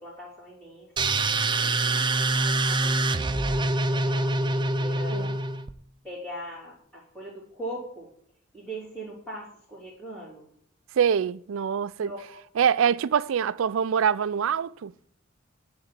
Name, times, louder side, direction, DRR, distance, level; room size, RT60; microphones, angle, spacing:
voice 1, 0.0-1.8 2.1-5.4 6.0-8.1 8.5-10.5 12.0-12.4, right 1 dB, 10° left, 3.6 m, -41 dB
sound 1, 1.0-5.7, right 2 dB, 25° right, 0.6 m, -25 dB
voice 2, 10.9-12.1 12.6-14.9, right 7 dB, 70° right, 0.4 m, -24 dB
10.5 x 4.0 x 7.5 m
head